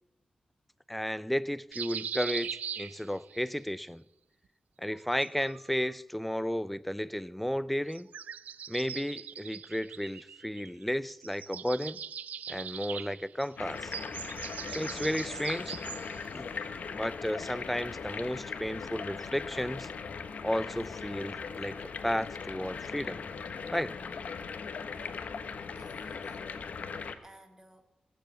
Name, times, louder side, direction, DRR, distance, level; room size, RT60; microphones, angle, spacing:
voice 1, 0.9-4.0 4.8-8.1 8.7-12.0 12.5-13.9 14.7-15.8 16.1-16.6 16.9-19.9 20.4-23.2 23.7-24.0, equal, 5° left, 0.5 m, -33 dB
sound 1, 1.7-3.5 4.9-5.9 7.9-10.8 11.1-16.3, right 8 dB, 85° right, 0.4 m, -41 dB
sound 2, 13.6-27.1, left 5 dB, 70° left, 1.1 m, -39 dB
voice 2, 25.7-26.9 27.2-27.8, right 1 dB, 20° right, 1.9 m, -57 dB
16.5 x 7.6 x 8.3 m
cardioid pair, 70°, 3 cm